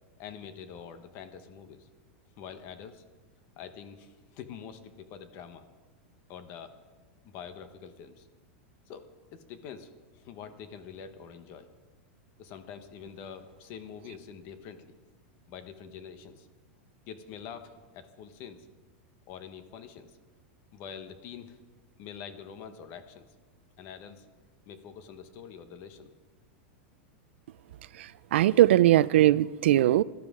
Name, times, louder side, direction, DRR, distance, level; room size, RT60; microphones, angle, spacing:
voice 1, 0.2-1.9 2.4-3.0 3.6-5.6 6.3-6.7 7.2-8.3 8.9-11.7 12.4-14.9 15.5-16.5 17.1-18.7 19.3-20.2 20.7-21.6 22.0-23.3 23.8-24.3 24.7-26.1, left 7 dB, 40° left, 10 dB, 1.1 m, -45 dB
voice 2, 28.0-30.0, right 14 dB, 75° right, 18 dB, 0.4 m, -21 dB
17.5 x 12.0 x 3.7 m, 1.3 s
supercardioid pair, 160°, 6 cm